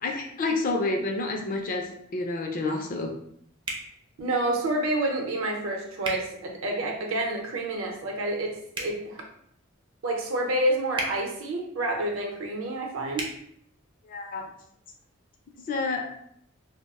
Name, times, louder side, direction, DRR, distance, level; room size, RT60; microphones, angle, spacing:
voice 1, 0.0-3.1 14.1-14.5 15.7-16.1, left 3 dB, 40° left, 2 dB, 0.4 m, -29 dB
sound 1, 3.6-3.9 6.0-6.2 8.7-8.9 10.9-11.1 13.1-13.3, right 1 dB, 25° right, 0.4 m, -32 dB
voice 2, 4.2-9.2 10.0-13.3, right 1 dB, 70° right, 1 dB, 0.6 m, -28 dB
2.3 x 2.0 x 3.4 m, 0.69 s
head